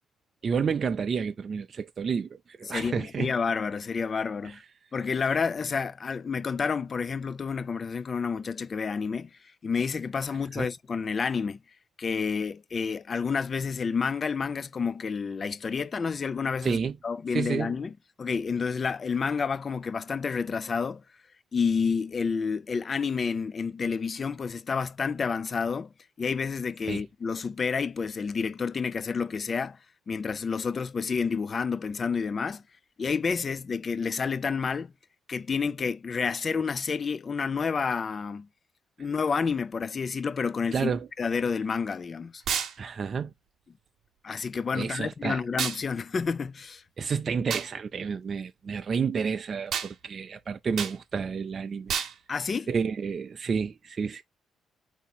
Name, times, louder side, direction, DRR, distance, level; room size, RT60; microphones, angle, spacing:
voice 1, 0.4-3.3 4.4-4.6 10.5-10.7 16.6-17.0 17.3-17.7 26.9-27.0 40.7-41.1 42.8-43.3 44.7-45.4 47.0-51.9 52.7-54.2, right 6 dB, 45° right, 0.4 m, -30 dB
voice 2, 2.7-4.6 4.9-9.3 9.6-11.6 12.0-17.9 18.2-21.0 21.5-25.9 26.2-29.8 30.1-32.6 33.0-34.9 35.3-38.5 39.0-40.9 41.2-42.4 44.2-46.8 52.3-52.7, left 5 dB, 40° left, 0.4 m, -29 dB
sound 1, 42.5-42.7 45.6-45.8 47.5-47.7 49.7-49.9 50.8-51.0 51.9-52.1, right 8 dB, 70° right, 0.9 m, -29 dB
4.1 x 2.7 x 4.1 m
cardioid pair, 90°, 0 cm